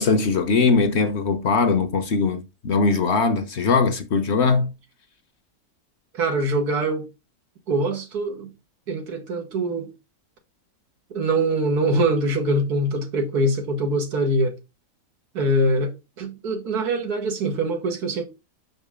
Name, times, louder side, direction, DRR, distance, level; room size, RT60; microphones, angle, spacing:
voice 1, 0.0-4.7, left 4 dB, 55° left, 0.9 m, -20 dB
voice 2, 6.1-7.1 7.7-8.5 8.9-9.9 11.1-14.5 15.3-15.9 16.2-18.2, right 1 dB, 90° right, 2.0 m, -23 dB
6.1 x 5.0 x 3.6 m
omnidirectional pair, 1.6 m